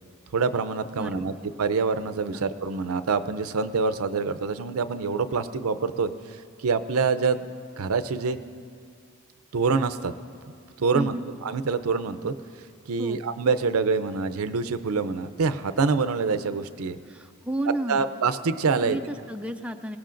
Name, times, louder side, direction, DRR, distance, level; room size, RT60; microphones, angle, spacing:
voice 1, 0.3-1.3 1.6-7.5 7.8-8.4 9.5-10.1 10.8-11.1 11.4-12.3 12.9-17.0 17.9-19.0, right 4 dB, 80° right, 12 dB, 0.5 m, -26 dB
voice 2, 1.0-1.4 2.3-2.5 10.9-11.2 13.0-13.2 17.1-18.1 18.8-20.0, right 1 dB, 5° right, 6 dB, 0.3 m, -32 dB
22.0 x 18.0 x 2.6 m, 2.3 s
head